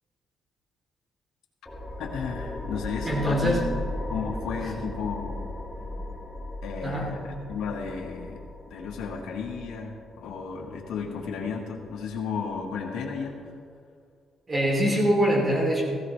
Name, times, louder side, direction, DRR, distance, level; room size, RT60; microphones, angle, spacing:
sound 1, 1.7-12.7, left 2 dB, 15° left, 1.6 m, -37 dB
voice 1, 2.0-3.6 4.1-5.5 6.6-8.4 8.7-13.4, left 6 dB, 85° left, -2 dB, 1.6 m, -33 dB
voice 2, 3.0-3.6 4.8-4.9 6.8-7.1 14.5-15.8, equal, 30° right, -3 dB, 3.1 m, -23 dB
16.0 x 15.0 x 3.2 m, 2.2 s
cardioid pair, 90°, 0 cm